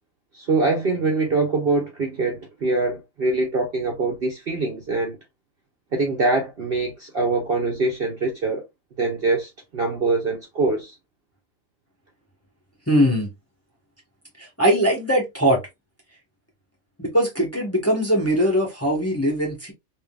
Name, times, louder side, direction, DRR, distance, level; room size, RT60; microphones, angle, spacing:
voice 1, 0.3-5.2 5.9-8.7 9.0-11.0, right 3 dB, 50° right, 0.8 m, -23 dB
voice 2, 12.9-13.3 14.4-15.6 17.0-19.7, equal, 10° left, 1.0 m, -21 dB
3.6 x 2.6 x 2.3 m
omnidirectional pair, 1.5 m